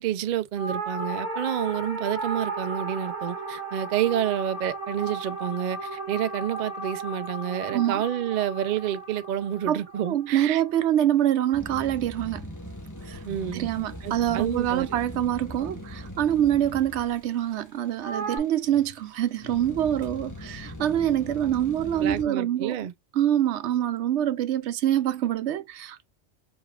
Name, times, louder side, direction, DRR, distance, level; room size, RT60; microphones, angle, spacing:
voice 1, 0.0-10.6 13.3-13.7 14.0-14.9 21.9-22.9, right 10 dB, 55° right, 0.5 m, -29 dB
sound 1, 0.6-11.1 18.0-18.4, right 3 dB, 10° right, 2.1 m, -35 dB
voice 2, 7.7-8.0 9.7-12.5 13.0-13.2 13.5-22.9 23.1-26.1, right 11 dB, 80° right, 0.9 m, -25 dB
sound 2, 11.5-22.2, left 1 dB, 15° left, 1.2 m, -40 dB
4.9 x 3.5 x 2.4 m
omnidirectional pair, 1.2 m